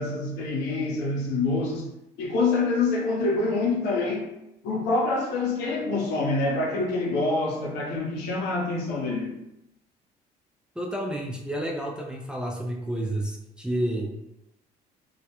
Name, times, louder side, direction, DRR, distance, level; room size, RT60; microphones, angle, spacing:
voice 1, 0.0-1.9 2.2-4.3 4.6-9.3, left 3 dB, 85° left, -1 dB, 0.7 m, -26 dB
voice 2, 10.8-14.1, right 1 dB, 5° right, -1 dB, 0.3 m, -30 dB
2.3 x 2.1 x 2.8 m, 0.86 s
cardioid pair, 110°, 17 cm